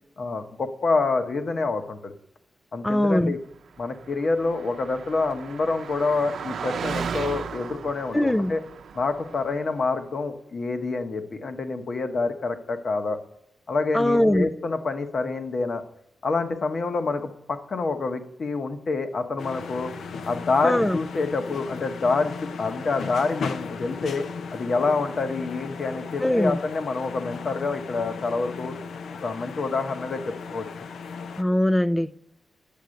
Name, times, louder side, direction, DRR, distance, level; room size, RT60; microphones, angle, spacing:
voice 1, 0.2-2.1 2.7-3.4 3.8-8.6 8.9-13.2 13.7-15.8 16.2-19.9 20.3-24.2 24.5-28.7 29.2-30.6, left 3 dB, 45° left, 1.1 m, -27 dB
voice 2, 2.8-3.3 8.1-8.5 13.9-14.5 20.6-21.0 26.2-26.6 31.4-32.1, left 1 dB, 10° left, 0.3 m, -21 dB
Car passing by, 3.8-9.8, right 6 dB, 70° right, 0.7 m, -36 dB
sound 1, 19.4-31.4, left 5 dB, 80° left, 0.8 m, -36 dB
10.5 x 8.1 x 6.4 m
wide cardioid pair, 170°, 0 cm